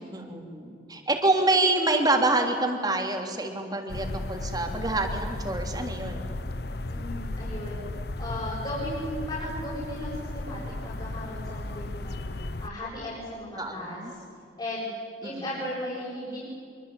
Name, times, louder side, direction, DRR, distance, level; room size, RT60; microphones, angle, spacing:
voice 1, 0.0-6.3 13.6-14.1 15.2-15.5, right 2 dB, 25° right, 3 dB, 3.4 m, -27 dB
sound 1, 3.9-12.7, left 2 dB, 65° left, 1.0 m, -35 dB
voice 2, 6.9-7.8 8.2-12.2 12.6-14.0 14.6-16.4, left 1 dB, 30° left, -6 dB, 7.5 m, -36 dB
25.5 x 24.0 x 8.9 m, 2.4 s
head